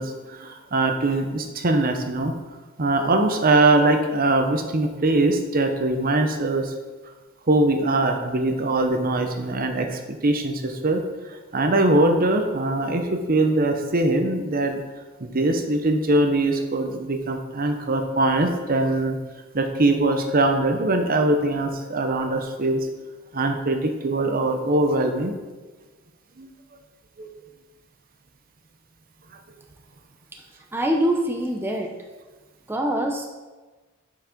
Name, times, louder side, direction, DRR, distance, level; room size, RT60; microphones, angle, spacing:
voice 1, 0.0-2.3 2.8-6.7 7.5-11.0 11.5-14.8 15.2-19.2 19.5-22.9 23.3-25.3 26.4-26.5 27.2-27.3, right 2 dB, 45° right, 5 dB, 0.8 m, -22 dB
voice 2, 30.7-31.9 32.7-33.3, right 1 dB, 10° right, 1 dB, 0.6 m, -24 dB
7.4 x 5.9 x 5.1 m, 1.3 s
head